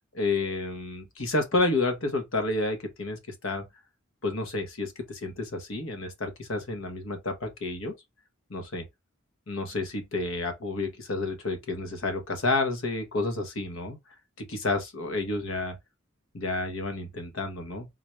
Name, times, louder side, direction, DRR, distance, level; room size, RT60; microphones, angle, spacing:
voice 1, 0.1-3.6 4.2-7.9 8.5-8.8 9.5-14.0 14.4-15.8 16.3-17.9, left 2 dB, 80° left, 0.9 m, -30 dB
3.8 x 2.2 x 3.0 m
head